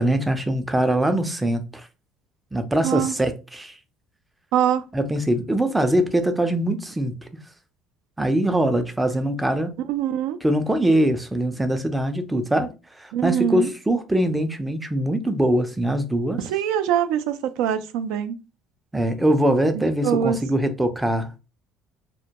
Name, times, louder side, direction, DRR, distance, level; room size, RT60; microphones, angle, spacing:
voice 1, 0.0-1.9 2.5-3.8 4.9-7.2 8.2-9.8 10.4-16.4 18.9-21.4, right 1 dB, 10° right, 0.4 m, -22 dB
voice 2, 2.8-3.1 4.5-4.8 9.9-10.4 13.1-13.7 16.4-18.4 19.7-20.4, right 9 dB, 85° right, 0.3 m, -23 dB
2.2 x 2.1 x 2.7 m
cardioid pair, 105°, 0 cm